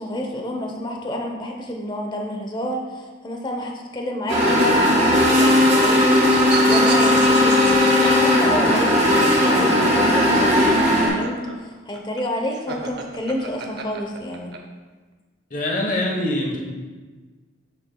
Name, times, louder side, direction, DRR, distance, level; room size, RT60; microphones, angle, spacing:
voice 1, 0.0-14.5, left 1 dB, 25° left, 1 dB, 0.8 m, -29 dB
sound 1, 4.3-11.1, left 1 dB, 30° right, 2.2 m, -17 dB
sound 2, 6.0-9.1 10.3-14.6, right 4 dB, 55° right, 0.7 m, -33 dB
voice 2, 15.5-16.6, left 1 dB, 40° left, -1 dB, 1.1 m, -23 dB
8.5 x 7.0 x 2.3 m, 1.4 s
head